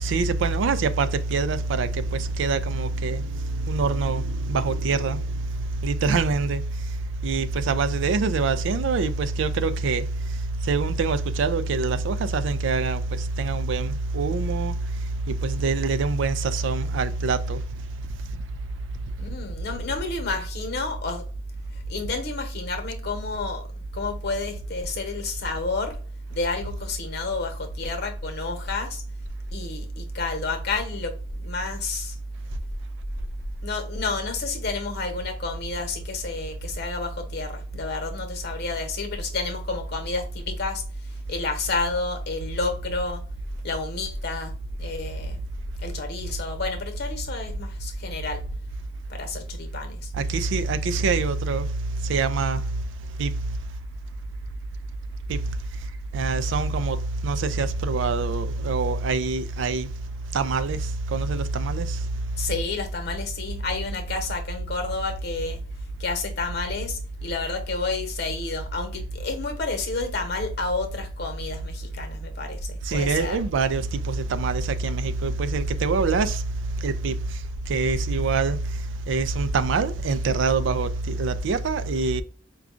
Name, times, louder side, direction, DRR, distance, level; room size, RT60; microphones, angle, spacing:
voice 1, 0.0-5.4 5.8-6.6 7.2-10.1 10.7-14.7 15.3-17.6 50.2-51.7 52.0-52.6 53.2-53.3 55.3-55.4 56.1-57.0 57.2-59.9 60.3-60.8 61.1-62.0 72.9-76.4 76.8-77.1 77.7-78.6 79.1-82.2, right 4 dB, 65° right, 0.4 m, -25 dB
voice 2, 19.2-21.2 21.7-26.0 26.3-29.0 29.5-32.2 33.6-43.2 43.6-44.5 44.8-45.4 45.8-48.4 49.1-50.1 62.4-65.6 66.0-73.4, left 2 dB, 55° left, 1.0 m, -29 dB
4.9 x 2.3 x 2.4 m
head